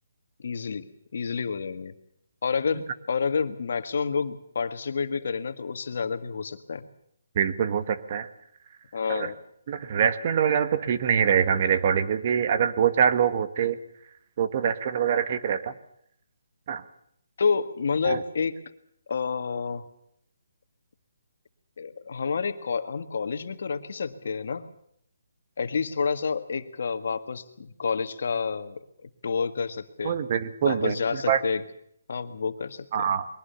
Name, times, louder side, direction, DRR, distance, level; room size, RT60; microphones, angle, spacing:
voice 1, 0.4-0.9 1.1-1.9 2.4-6.8 8.9-9.4 17.4-18.6 19.1-19.9 21.8-24.7 25.6-30.2 30.6-31.6 32.1-33.1, left 5 dB, 60° left, 9 dB, 1.8 m, -29 dB
voice 2, 7.4-8.3 9.1-9.3 9.7-13.8 14.4-15.7 16.7-16.8 18.0-18.2 30.0-30.9 31.3-31.4 32.9-33.3, right 8 dB, 35° right, 11 dB, 1.4 m, -24 dB
22.5 x 18.5 x 7.1 m, 0.71 s
hypercardioid pair, 165°, 0 cm